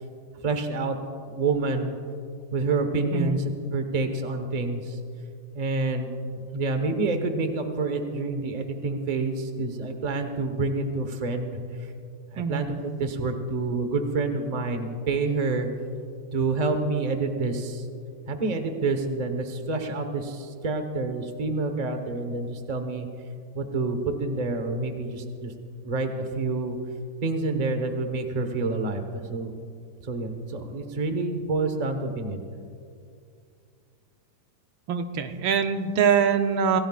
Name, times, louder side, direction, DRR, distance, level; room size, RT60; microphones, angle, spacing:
voice 1, 0.4-0.9 1.3-2.0 2.5-3.4 3.7-4.8 5.5-6.1 6.5-11.5 12.3-12.7 13.0-15.7 16.3-17.8 18.3-23.1 23.5-25.5 25.8-26.8 27.2-29.0 29.3-29.5 30.1-32.4, right 3 dB, 25° right, 6 dB, 0.9 m, -27 dB
voice 2, 34.9-36.8, right 7 dB, 80° right, 7 dB, 1.6 m, -23 dB
26.0 x 16.5 x 2.4 m, 2.3 s
omnidirectional pair, 2.1 m